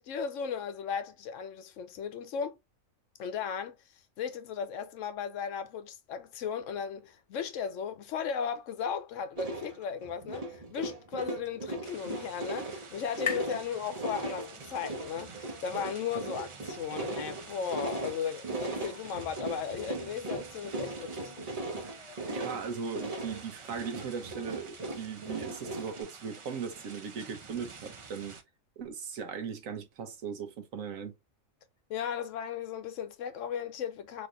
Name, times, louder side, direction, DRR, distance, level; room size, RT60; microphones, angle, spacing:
voice 1, 0.0-2.6 3.2-3.7 4.2-21.5 31.9-34.3, left 7 dB, 75° left, 0.9 m, -36 dB
sound 1, 9.4-26.0, right 2 dB, 35° right, 0.9 m, -38 dB
sound 2, 10.9-14.7, left 7 dB, 45° left, 0.6 m, -42 dB
sound 3, 11.8-28.4, right 4 dB, 55° right, 0.3 m, -50 dB
voice 2, 22.3-28.4 28.8-31.1, right 6 dB, 80° right, 1.3 m, -38 dB
4.1 x 3.3 x 2.5 m
omnidirectional pair, 1.4 m